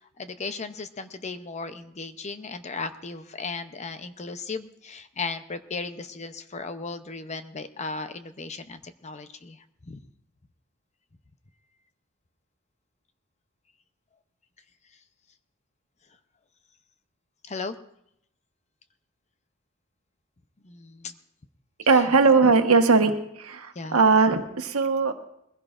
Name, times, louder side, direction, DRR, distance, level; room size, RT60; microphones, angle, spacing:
voice 1, 0.0-10.0 17.4-17.8 20.6-21.2 23.7-24.0, left 4 dB, 30° left, 10 dB, 0.7 m, -36 dB
voice 2, 21.9-23.1 23.4-25.1, right 4 dB, 90° right, 5 dB, 1.3 m, -19 dB
22.0 x 15.5 x 2.5 m, 0.76 s
head